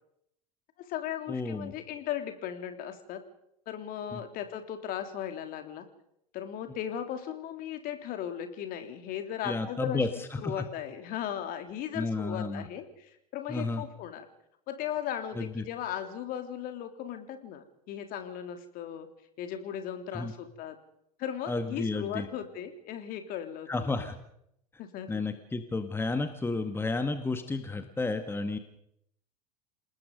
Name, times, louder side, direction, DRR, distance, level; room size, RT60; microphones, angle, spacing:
voice 1, 0.8-3.2 3.7-5.8 6.3-10.0 10.4-14.3 14.7-19.1 19.4-20.8 21.2-24.1 24.8-25.2, left 10 dB, 45° left, 7 dB, 3.1 m, -37 dB
voice 2, 1.3-1.7 4.1-4.2 9.4-10.7 11.9-12.6 13.5-13.8 15.4-15.6 20.1-20.3 21.5-22.3 23.7-24.2 25.1-28.6, left 3 dB, 10° left, 9 dB, 1.8 m, -32 dB
28.5 x 19.5 x 5.4 m, 0.76 s
figure-of-eight pair, 75°, 20 cm